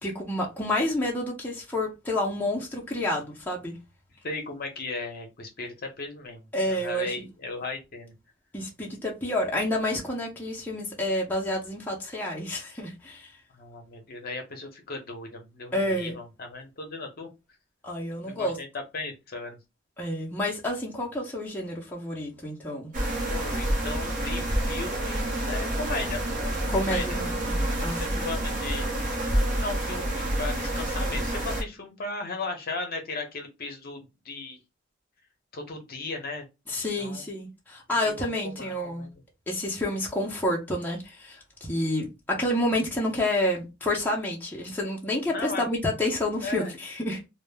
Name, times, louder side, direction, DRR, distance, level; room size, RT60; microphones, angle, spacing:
voice 1, 0.0-3.8 6.5-7.1 8.5-13.3 15.7-16.1 17.8-18.6 20.0-22.9 26.7-28.2 36.7-39.1 39.5-47.2, left 1 dB, 10° left, 0.6 m, -29 dB
voice 2, 4.2-8.1 13.5-17.3 18.2-19.6 23.3-27.1 27.8-28.9 29.6-34.6 35.5-36.4 37.0-37.2 38.0-39.1 45.3-45.6 46.4-46.7, left 3 dB, 50° left, 0.7 m, -36 dB
sound 1, 22.9-31.6, right 1 dB, 40° right, 0.7 m, -28 dB
2.1 x 2.0 x 3.2 m
head